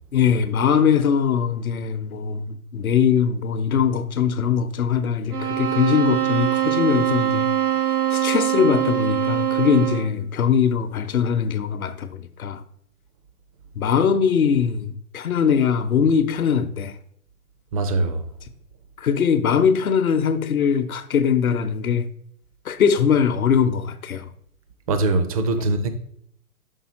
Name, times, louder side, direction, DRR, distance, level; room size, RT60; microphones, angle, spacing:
voice 1, 0.1-7.5 8.1-12.6 13.8-16.9 19.0-22.1 22.7-24.3, left 7 dB, 70° left, 0.8 m, -21 dB
sound 1, 5.3-10.2, right 11 dB, 85° right, 1.0 m, -23 dB
voice 2, 17.7-18.2 24.9-25.9, right 2 dB, 25° right, 0.5 m, -22 dB
5.6 x 5.5 x 4.2 m
figure-of-eight pair, 125°, 45 cm